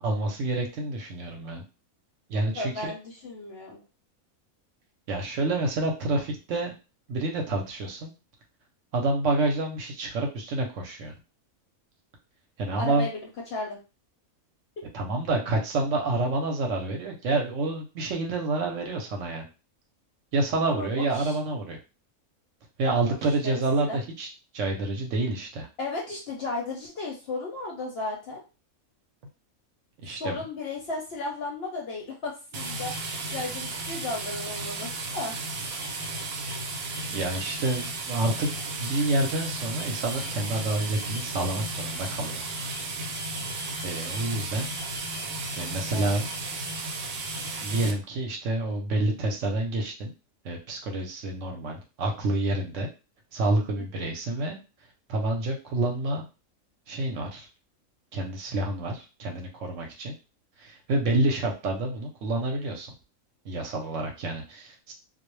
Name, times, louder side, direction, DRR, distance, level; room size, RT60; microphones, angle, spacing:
voice 1, 0.0-1.6 2.3-2.9 5.1-6.7 7.1-8.1 8.9-11.1 12.6-13.1 14.9-19.5 20.3-21.8 22.8-24.3 24.5-25.7 30.0-30.4 37.1-38.5 38.8-42.4 43.8-44.7 45.6-46.6 47.6-50.1 50.4-52.9 53.3-54.6 55.1-56.3 56.9-57.5 58.1-60.1 60.6-62.9 63.4-64.9, right 2 dB, 65° right, 1 dB, 0.9 m, -28 dB
voice 2, 2.5-3.8 12.8-13.8 20.7-21.4 22.8-23.2 23.4-24.0 25.8-28.4 30.2-32.9 33.3-35.4 45.9-46.2 53.8-54.1, left 2 dB, 60° left, -1 dB, 0.7 m, -34 dB
sound 1, 32.5-47.9, right 2 dB, 90° right, 1.1 m, -34 dB
2.4 x 2.0 x 3.0 m, 0.31 s
omnidirectional pair, 1.5 m